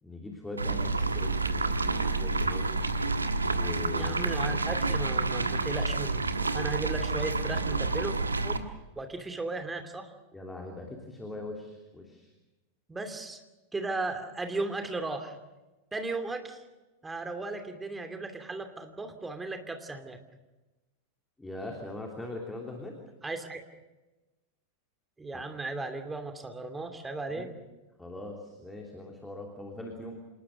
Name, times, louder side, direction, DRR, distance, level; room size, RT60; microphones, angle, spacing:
voice 1, 0.0-2.9 3.5-4.2 10.3-12.3 21.4-22.9 25.3-25.5 27.3-27.5 28.0-30.2, left 2 dB, 10° left, 1 dB, 3.1 m, -41 dB
sound 1, 0.6-8.6, right 3 dB, 80° right, 1.4 m, -29 dB
voice 2, 3.9-6.2 6.5-8.1 8.4-8.6 9.0-10.1 12.9-13.4 13.7-15.4 15.9-16.6 17.0-20.2 23.2-23.6 25.2-27.5, right 3 dB, 10° right, 7 dB, 2.6 m, -36 dB
27.5 x 20.0 x 6.6 m, 1.1 s
figure-of-eight pair, 90°, 0 cm